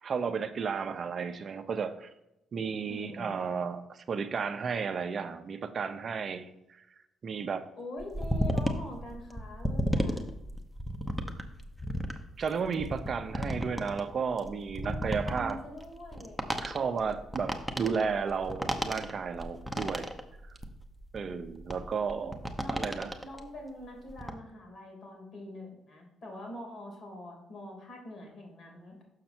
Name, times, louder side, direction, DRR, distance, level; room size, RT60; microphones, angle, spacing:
voice 1, 0.0-2.1 2.5-6.5 7.2-7.7 12.4-15.6 16.6-20.1 20.4-20.5 21.1-22.4 22.7-23.1, right 6 dB, 50° right, 8 dB, 0.6 m, -33 dB
voice 2, 2.9-3.4 7.8-10.2 14.7-16.4 22.2-22.9 23.2-29.0, left 1 dB, 55° left, 1 dB, 2.7 m, -44 dB
sound 1, 8.0-23.4 23.8-24.3, equal, ahead, 0.8 m, -33 dB
6.6 x 5.7 x 4.4 m, 0.88 s
cardioid pair, 90°, 0 cm